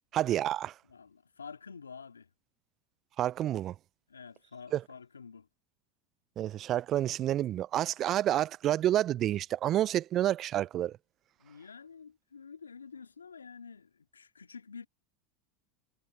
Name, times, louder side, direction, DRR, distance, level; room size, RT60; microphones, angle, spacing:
voice 1, 0.1-0.7 3.2-3.7 4.7-4.8 6.4-11.0, right 12 dB, 40° right, 0.3 m, -29 dB
voice 2, 0.9-2.3 4.1-5.5 11.4-14.9, left 5 dB, 90° left, 2.3 m, -48 dB
hypercardioid pair, 85°, 0 cm